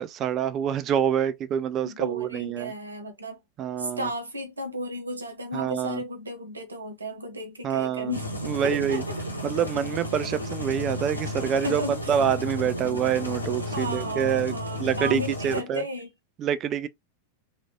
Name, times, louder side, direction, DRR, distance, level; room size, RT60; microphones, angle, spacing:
voice 1, 0.0-2.7 3.6-4.1 5.5-6.0 7.6-8.1 8.4-9.0 9.4-11.8 12.1-14.5 14.8-15.8 16.4-16.9, right 9 dB, 30° right, 0.4 m, -26 dB
voice 2, 1.8-3.4 3.8-8.3 8.7-9.2 11.4-12.2 13.7-16.1, equal, 75° right, 0.9 m, -34 dB
sound 1, 8.1-15.6, left 1 dB, 85° left, 0.9 m, -33 dB
3.2 x 2.4 x 3.5 m
figure-of-eight pair, 90°, 0 cm